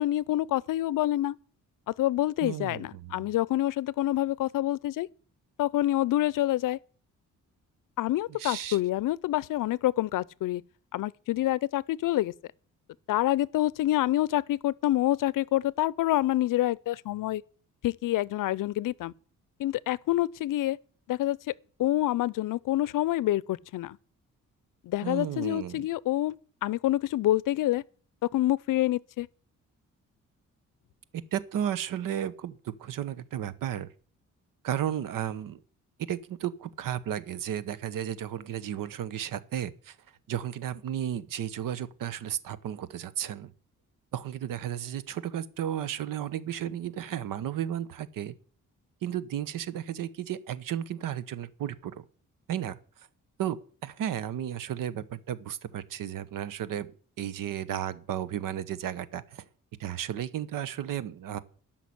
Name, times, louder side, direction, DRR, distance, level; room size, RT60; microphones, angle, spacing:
voice 1, 0.0-1.4 2.0-5.1 5.6-6.8 8.0-10.6 10.9-12.3 13.1-17.4 17.8-19.1 19.6-20.8 21.1-21.5 21.8-24.0 24.8-26.4 26.6-27.8 28.3-29.3, left 14 dB, 80° left, 0.6 m, -27 dB
voice 2, 2.4-3.3 8.3-8.8 25.0-25.9 31.1-33.9 34.6-35.6 36.1-40.0 40.3-43.5 44.1-48.3 49.0-52.0 52.5-52.8 53.4-56.9 57.2-59.4 59.8-61.4, right 10 dB, 90° right, 1.0 m, -33 dB
13.0 x 5.9 x 9.5 m
cardioid pair, 100°, 32 cm